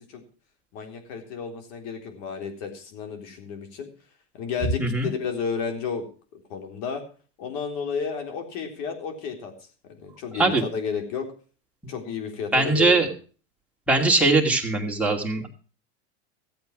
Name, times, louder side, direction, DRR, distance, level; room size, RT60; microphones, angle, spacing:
voice 1, 0.7-3.9 4.3-6.0 6.3-7.0 7.4-9.5 9.8-11.3 11.9-13.1, left 6 dB, 55° left, 5 dB, 3.8 m, -32 dB
voice 2, 4.8-5.1 10.4-10.6 12.5-13.1 13.9-15.5, right 3 dB, 5° right, 0 dB, 2.4 m, -21 dB
15.0 x 8.2 x 6.1 m, 0.39 s
supercardioid pair, 130°, 33 cm